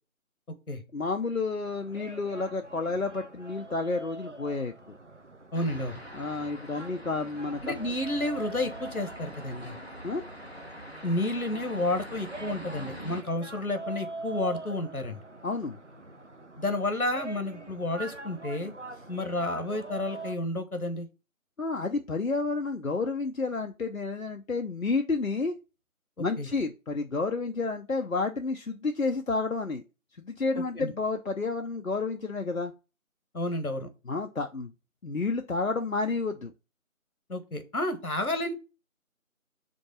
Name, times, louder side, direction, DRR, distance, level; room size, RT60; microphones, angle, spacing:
voice 1, 0.9-5.0 6.1-7.8 10.0-10.2 15.4-15.8 21.6-25.6 26.2-29.8 30.2-32.7 34.1-34.7 35.0-36.5, left 3 dB, 70° left, 5 dB, 0.8 m, -30 dB
sound 1, 1.6-20.3, right 2 dB, 55° right, 0.7 m, -44 dB
voice 2, 5.5-6.0 7.6-9.8 11.0-15.2 16.6-18.7 19.1-21.1 26.2-26.5 30.5-30.9 33.3-33.9 37.3-38.5, left 1 dB, 85° left, 8 dB, 1.4 m, -31 dB
sound 2, 5.5-13.2, equal, 45° left, 1.0 m, -44 dB
5.2 x 3.7 x 5.5 m, 0.30 s
figure-of-eight pair, 180°, 42 cm